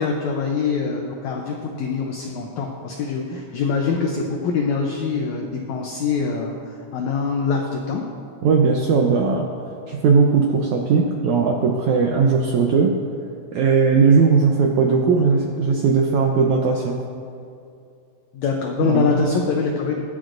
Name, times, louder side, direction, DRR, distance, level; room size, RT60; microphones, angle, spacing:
voice 1, 0.0-6.6 6.9-8.0 18.3-20.0, left 5 dB, 80° left, 1 dB, 1.6 m, -24 dB
voice 2, 8.4-9.5 9.9-12.9 13.5-17.0 18.8-19.2, right 5 dB, 80° right, 1 dB, 1.7 m, -18 dB
23.0 x 7.8 x 2.6 m, 2.5 s
omnidirectional pair, 4.2 m